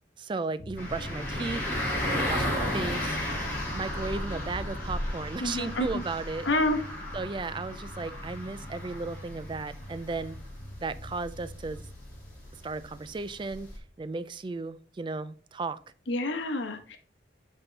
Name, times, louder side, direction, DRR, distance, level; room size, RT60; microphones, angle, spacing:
voice 1, 0.2-1.6 2.1-3.2 3.7-6.5 7.1-10.4 10.8-11.9 12.5-13.7 14.0-15.8, right 3 dB, 25° right, 0.3 m, -35 dB
sound 1, 0.6-14.0, left 1 dB, 45° left, 0.8 m, -45 dB
sound 2, 0.8-13.8, left 1 dB, 10° left, 2.2 m, -34 dB
voice 2, 5.4-6.0 6.4-6.8 16.1-17.0, left 1 dB, 75° left, 1.0 m, -28 dB
8.0 x 3.7 x 4.0 m
head